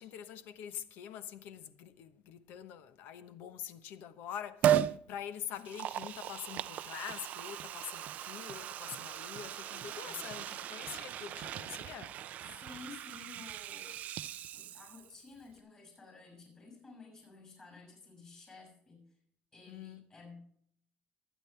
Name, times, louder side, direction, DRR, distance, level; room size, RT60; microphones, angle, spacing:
voice 1, 0.0-12.2 19.7-20.1, left 9 dB, 70° left, 1.1 m, -45 dB
Liquid, 4.6-5.0 5.6-15.2 15.5-15.6, right 11 dB, 45° right, 0.4 m, -36 dB
voice 2, 12.5-14.0 14.5-19.2 19.5-20.4, left 4 dB, 20° left, 6.2 m, -53 dB
24.5 x 9.2 x 3.4 m
cardioid pair, 180°, 4 cm